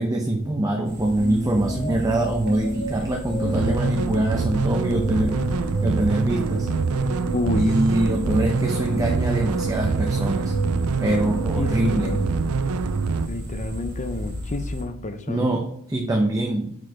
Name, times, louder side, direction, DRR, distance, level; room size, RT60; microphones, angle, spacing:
voice 1, 0.0-5.4 5.8-6.7 7.5-10.6 11.0-12.1 15.3-16.7, right 1 dB, 15° right, 1 dB, 0.7 m, -24 dB
sound 1, 0.9-14.8, equal, 40° right, 2.4 m, -34 dB
sound 2, 1.1-13.2, right 1 dB, 80° left, 2.6 m, -34 dB
sound 3, 3.4-13.3, right 4 dB, 75° right, 0.5 m, -25 dB
voice 2, 7.3-7.7 11.0-11.2 11.6-12.2 13.3-15.4, left 2 dB, 35° left, 9 dB, 0.7 m, -30 dB
6.2 x 4.9 x 4.8 m, 0.69 s
head